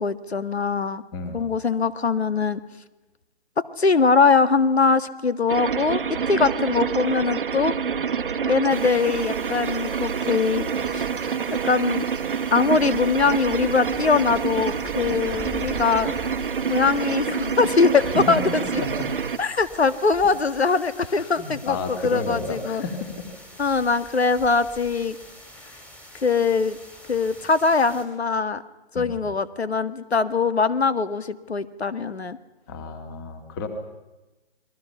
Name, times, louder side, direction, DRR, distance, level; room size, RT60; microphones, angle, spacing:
voice 1, 0.0-1.0 1.3-2.6 3.6-6.0 6.3-7.7 8.5-10.7 10.9-11.1 11.6-12.0 12.5-16.1 16.7-18.6 19.4-21.8 22.0-22.8 23.6-25.2 26.2-26.8 27.1-28.6 28.9-32.4, left 4 dB, 80° left, 12 dB, 1.8 m, -22 dB
voice 2, 1.1-1.5 18.0-19.1 21.0-23.3 28.9-29.3 32.7-33.7, left 3 dB, 20° left, 6 dB, 2.3 m, -32 dB
sound 1, 5.5-19.4, right 6 dB, 55° right, 1.2 m, -27 dB
sound 2, 8.7-28.0, equal, 5° left, 2.4 m, -44 dB
30.0 x 22.0 x 5.7 m, 1.1 s
hypercardioid pair, 160°, 32 cm